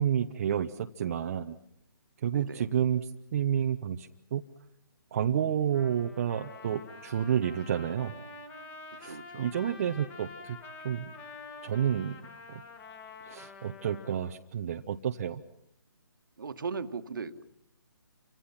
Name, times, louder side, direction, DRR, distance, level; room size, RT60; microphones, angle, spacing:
voice 1, 0.0-1.6 2.2-4.4 5.1-8.1 9.0-10.6 10.8-11.1 11.6-12.2 12.5-12.6 13.2-15.4, right 9 dB, 40° right, 5 dB, 1.0 m, -30 dB
voice 2, 2.3-2.6 9.0-9.5 16.4-17.4, right 5 dB, 60° right, 9 dB, 1.7 m, -38 dB
Trumpet, 5.7-14.1, left 4 dB, 15° left, 2.5 m, -47 dB
29.5 x 25.5 x 5.8 m, 0.76 s
figure-of-eight pair, 140°, 12 cm